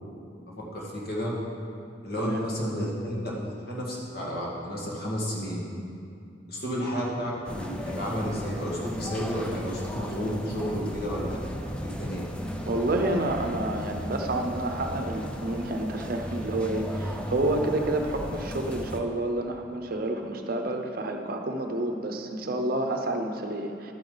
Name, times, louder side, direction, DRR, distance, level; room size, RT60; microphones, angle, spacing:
voice 1, 0.6-1.3 2.0-5.6 6.5-11.4 11.8-12.2, equal, 50° left, -4 dB, 2.0 m, -31 dB
sound 1, 7.4-19.0, equal, 5° left, 0.5 m, -36 dB
voice 2, 12.7-23.9, right 1 dB, 50° right, 4 dB, 0.7 m, -29 dB
11.5 x 8.9 x 4.0 m, 2.4 s
head